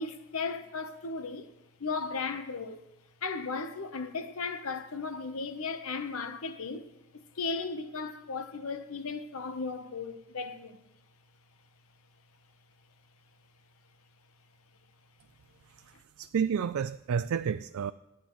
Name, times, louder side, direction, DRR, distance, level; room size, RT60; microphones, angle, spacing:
voice 1, 0.0-1.5 1.8-2.8 3.2-6.9 7.1-10.9, left 4 dB, 85° left, 0.9 m, -36 dB
voice 2, 15.7-17.9, right 7 dB, 80° right, 0.3 m, -31 dB
25.0 x 9.3 x 3.1 m
head